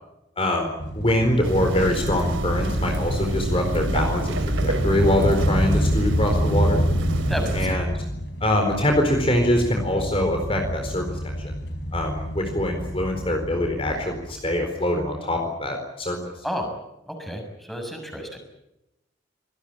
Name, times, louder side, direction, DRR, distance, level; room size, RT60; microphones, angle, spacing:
voice 1, 0.4-6.8 7.5-8.0 8.4-11.5 11.9-16.3, left 1 dB, 30° left, 4 dB, 4.3 m, -24 dB
sound 1, 0.8-14.6, equal, 60° left, 4.0 m, -28 dB
sound 2, 1.4-7.7, right 1 dB, 90° right, 2.7 m, -27 dB
voice 2, 7.3-7.8 16.4-16.7 17.1-18.4, equal, ahead, 3 dB, 6.7 m, -31 dB
27.0 x 20.0 x 8.8 m, 0.90 s
head